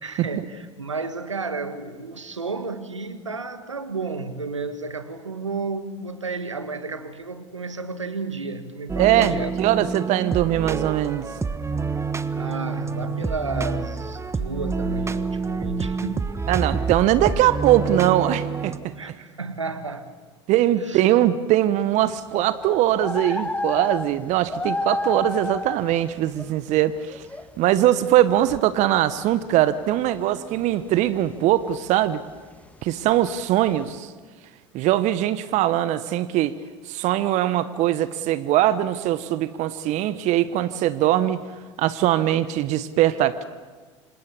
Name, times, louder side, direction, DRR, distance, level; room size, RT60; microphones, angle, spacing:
voice 1, 0.0-9.5 12.3-16.3 18.8-20.1 20.8-21.0 23.3-23.4, right 3 dB, 90° right, 11 dB, 1.6 m, -32 dB
sound 1, 8.9-18.8, right 4 dB, 20° right, 1.4 m, -28 dB
voice 2, 9.0-11.2 16.5-18.7 20.5-27.2 27.6-32.2 32.8-34.1 34.7-36.5 36.9-41.4 41.8-43.4, right 13 dB, 50° right, 14 dB, 1.1 m, -21 dB
sound 2, 22.0-26.5 27.1-27.8 28.0-28.1 28.3-28.8 29.1-34.0, left 2 dB, 10° left, 1.6 m, -31 dB
27.0 x 27.0 x 7.2 m, 1.4 s
figure-of-eight pair, 70°, 15 cm